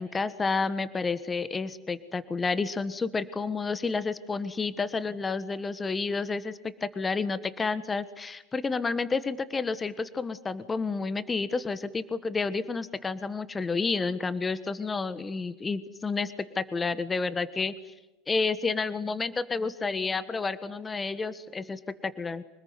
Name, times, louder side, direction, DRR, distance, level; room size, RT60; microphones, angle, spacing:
voice 1, 0.0-17.7 18.3-22.4, left 4 dB, 20° left, 14 dB, 1.4 m, -30 dB
26.0 x 20.0 x 9.6 m, 1.0 s
hypercardioid pair, 90°, 0 cm